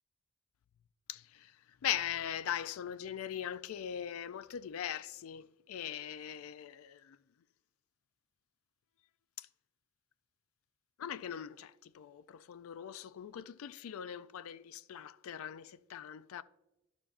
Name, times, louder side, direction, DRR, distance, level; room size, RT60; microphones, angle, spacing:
voice 1, 1.1-7.2 9.4-9.5 11.0-16.4, left 10 dB, 80° left, 0.3 m, -41 dB
11.0 x 7.1 x 2.5 m
head